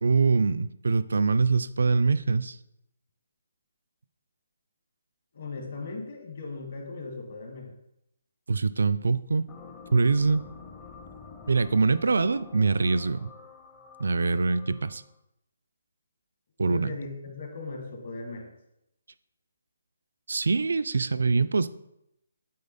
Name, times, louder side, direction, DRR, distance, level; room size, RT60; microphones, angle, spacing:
voice 1, 0.0-2.6 8.5-9.5 9.9-10.4 11.5-13.3 14.0-15.0 16.6-16.9 20.3-21.7, right 4 dB, 80° right, 14 dB, 0.3 m, -24 dB
voice 2, 5.3-7.7 16.6-18.5, left 3 dB, 50° left, 3 dB, 1.4 m, -38 dB
sound 1, 9.5-15.1, left 5 dB, 15° left, 0.6 m, -48 dB
8.5 x 4.0 x 4.0 m, 0.82 s
hypercardioid pair, 170°, 0 cm